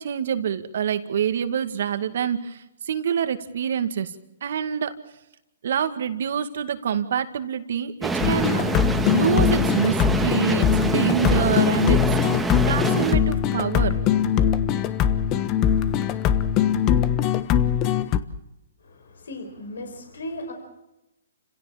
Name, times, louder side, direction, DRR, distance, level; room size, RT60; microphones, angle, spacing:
voice 1, 0.0-4.1 4.4-4.9 5.6-8.7 9.1-14.0, right 8 dB, 65° right, 9 dB, 2.2 m, -26 dB
sound 1, 8.0-13.2, right 3 dB, 5° right, 1.7 m, -25 dB
sound 2, 8.2-18.2, left 9 dB, 30° left, 1.3 m, -22 dB
voice 2, 18.8-20.5, left 1 dB, 75° left, 5 dB, 5.3 m, -36 dB
30.0 x 17.0 x 7.4 m, 0.92 s
hypercardioid pair, 135°, 0 cm